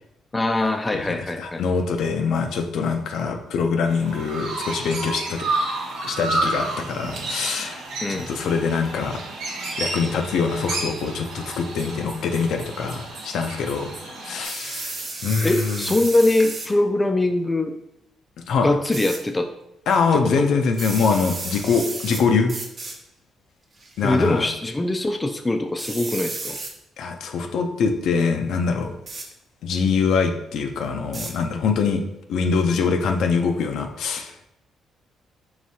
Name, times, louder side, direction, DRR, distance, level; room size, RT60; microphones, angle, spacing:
voice 1, 0.3-1.6 8.0-8.3 15.4-17.8 18.6-19.5 20.1-20.5 24.0-26.6, left 2 dB, 20° left, 6 dB, 0.3 m, -22 dB
voice 2, 0.9-5.5 6.0-9.2 9.8-13.9 14.2-15.9 18.5-18.7 19.9-22.6 24.0-24.5 27.0-28.9 29.6-32.0 32.3-34.5, left 5 dB, 75° left, 5 dB, 0.5 m, -24 dB
Chirp tweet, 3.9-14.5, right 2 dB, 85° right, 0.9 m, -30 dB
sound 1, 14.4-16.7 18.9-19.2 20.7-22.2 22.5-23.0 23.8-24.1 25.8-26.7 29.1-29.3 31.1-31.3, right 3 dB, 40° right, 0.8 m, -33 dB
4.8 x 3.2 x 2.7 m, 0.80 s
cardioid pair, 90°, 0 cm